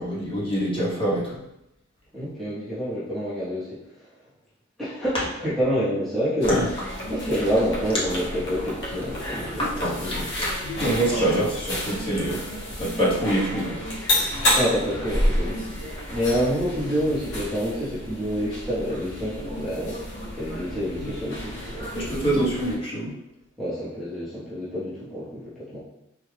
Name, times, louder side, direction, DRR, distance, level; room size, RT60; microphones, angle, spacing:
voice 1, 0.0-1.4 5.1-5.2 6.5-6.6 9.6-10.5 10.8-13.8 14.1-14.3 21.9-23.1, right 1 dB, 25° left, -7 dB, 1.0 m, -25 dB
voice 2, 2.1-3.8 4.8-5.1 5.4-6.6 7.1-9.6 10.0-10.2 14.5-15.6 16.1-20.0 20.4-22.4 23.6-25.8, equal, ahead, -12 dB, 0.8 m, -27 dB
sound 1, 6.4-22.8, left 1 dB, 60° left, 0.9 m, -30 dB
3.3 x 2.2 x 3.3 m, 0.85 s
head